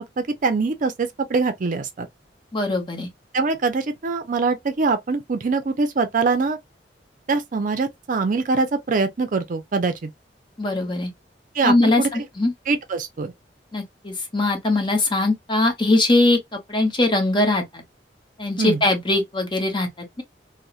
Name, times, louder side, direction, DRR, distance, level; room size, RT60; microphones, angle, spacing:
voice 1, 0.0-2.1 3.3-6.6 7.3-10.1 11.5-12.1 12.7-13.3 18.6-18.8, right 4 dB, 50° right, 0.5 m, -23 dB
voice 2, 2.5-3.1 10.6-11.1 11.6-12.5 13.7-16.4 16.7-17.8 18.4-19.9, left 2 dB, 30° left, 0.7 m, -21 dB
2.8 x 2.0 x 2.3 m
head